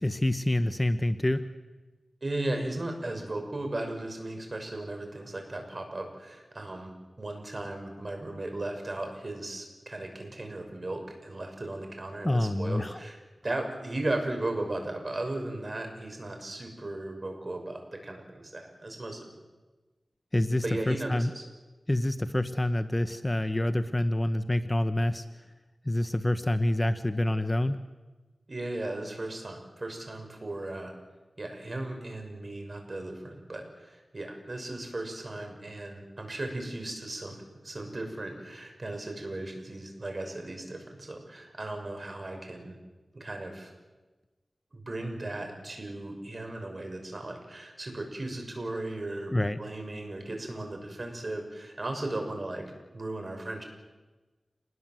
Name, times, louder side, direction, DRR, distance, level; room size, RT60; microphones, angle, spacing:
voice 1, 0.0-1.5 12.2-13.0 20.3-21.3 21.9-25.2 25.9-27.8 49.3-49.6, left 1 dB, 20° left, 10 dB, 1.0 m, -27 dB
voice 2, 2.2-19.2 20.6-21.4 28.5-30.9 31.4-37.4 37.6-42.8 43.1-43.7 44.7-52.7 52.9-53.6, right 2 dB, 45° right, 4 dB, 6.2 m, -36 dB
27.5 x 20.5 x 7.7 m, 1.2 s
wide cardioid pair, 70°, 0 cm